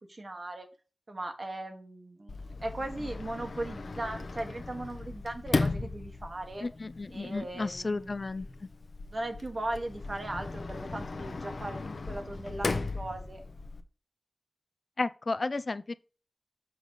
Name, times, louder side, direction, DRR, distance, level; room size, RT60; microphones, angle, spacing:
voice 1, 0.1-0.7 1.1-6.7 7.1-8.2 9.1-11.8 12.1-13.4, right 1 dB, 55° right, 1.5 m, -38 dB
Sliding door, 2.3-13.8, left 3 dB, 80° left, 0.7 m, -37 dB
voice 2, 6.6-8.7 15.0-16.0, left 3 dB, 55° left, 0.4 m, -33 dB
6.9 x 4.0 x 4.9 m
wide cardioid pair, 65°, 0 cm